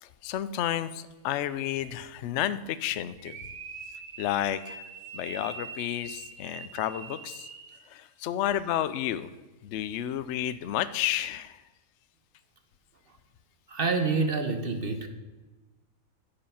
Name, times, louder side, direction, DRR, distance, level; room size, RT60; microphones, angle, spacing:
voice 1, 0.0-3.4 4.2-4.8 5.1-7.5 7.9-9.3 9.6-11.6, left 11 dB, 65° left, 14 dB, 0.8 m, -31 dB
sound 1, 3.2-7.9, right 5 dB, 70° right, 1.4 m, -43 dB
voice 2, 13.7-15.1, right 4 dB, 45° right, 7 dB, 1.1 m, -27 dB
10.5 x 7.0 x 5.6 m, 1.2 s
omnidirectional pair, 1.5 m